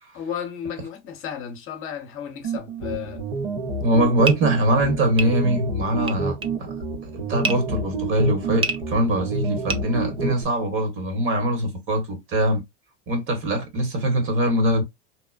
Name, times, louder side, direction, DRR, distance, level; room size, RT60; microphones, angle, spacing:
voice 1, 0.1-3.2 8.6-8.7, left 8 dB, 40° left, 0.9 m, -33 dB
sound 1, 2.4-10.4, right 4 dB, 75° right, 1.2 m, -29 dB
voice 2, 3.8-6.7 7.0-12.6 13.1-14.8, right 1 dB, 40° right, 1.4 m, -22 dB
sound 2, 4.2-10.6, right 3 dB, 20° right, 0.3 m, -31 dB
2.9 x 2.1 x 2.3 m
supercardioid pair, 110°, 32 cm